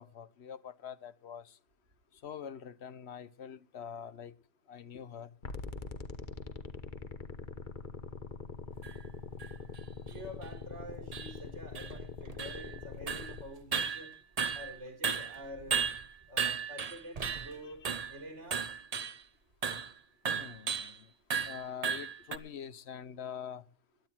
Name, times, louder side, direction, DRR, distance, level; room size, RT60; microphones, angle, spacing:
voice 1, 0.0-1.6 2.1-4.3 4.7-5.3 17.5-17.9 20.3-21.1 21.4-23.6, left 8 dB, 65° left, 1.1 m, -45 dB
sound 1, 5.4-13.4, left 4 dB, 45° left, 1.3 m, -43 dB
sound 2, 8.8-8.9 9.4-9.5 10.1-10.2 10.4-10.5 11.1-11.3 11.7-12.8 13.1-13.4 13.7-14.8 15.0-17.5 17.8-18.2 18.5-19.2 19.6-19.9 20.3-20.9 21.3-22.4, right 6 dB, 35° right, 0.8 m, -35 dB
voice 2, 10.1-14.1 14.5-15.8 16.3-17.8 18.1-18.6, equal, 85° right, 4.3 m, -47 dB
17.0 x 11.0 x 4.4 m
omnidirectional pair, 1.2 m